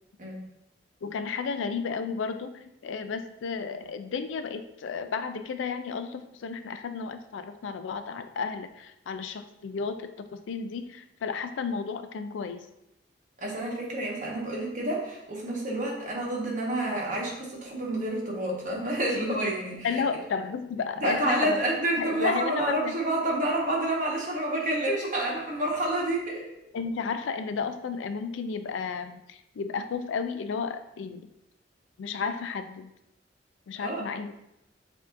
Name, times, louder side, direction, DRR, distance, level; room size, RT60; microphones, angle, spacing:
voice 1, 1.0-12.7 19.8-21.6 22.0-22.9 26.7-31.3 32.0-32.9 33.7-34.3, left 5 dB, 90° left, 9 dB, 0.4 m, -33 dB
voice 2, 13.4-20.0 21.0-26.4 33.8-34.0, right 1 dB, 45° right, -3 dB, 1.2 m, -29 dB
7.3 x 2.7 x 2.5 m, 0.86 s
head